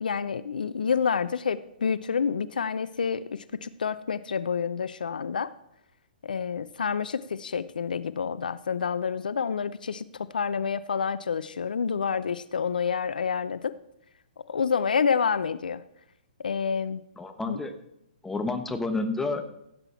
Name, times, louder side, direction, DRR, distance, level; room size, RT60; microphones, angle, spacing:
voice 1, 0.0-5.5 6.2-13.7 14.5-15.8 16.4-17.0 17.5-17.6, left 6 dB, 70° left, 16 dB, 0.6 m, -28 dB
voice 2, 17.2-17.7 18.2-19.4, left 3 dB, 5° left, 6 dB, 1.2 m, -29 dB
16.0 x 8.9 x 4.4 m, 0.79 s
figure-of-eight pair, 125°, 5 cm